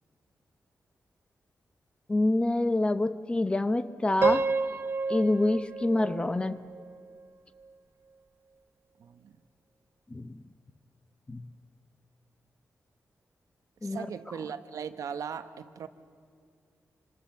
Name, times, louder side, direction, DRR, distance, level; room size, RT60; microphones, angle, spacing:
voice 1, 2.1-4.5 5.1-6.7 10.1-10.4 11.3-11.5 13.8-14.1, left 2 dB, 20° left, 0.7 m, -27 dB
Piano, 4.2-7.2, right 4 dB, 45° right, 0.7 m, -30 dB
voice 2, 9.0-9.4 13.8-15.9, right 7 dB, 90° right, 1.0 m, -38 dB
26.0 x 26.0 x 7.1 m
wide cardioid pair, 150°, 6 cm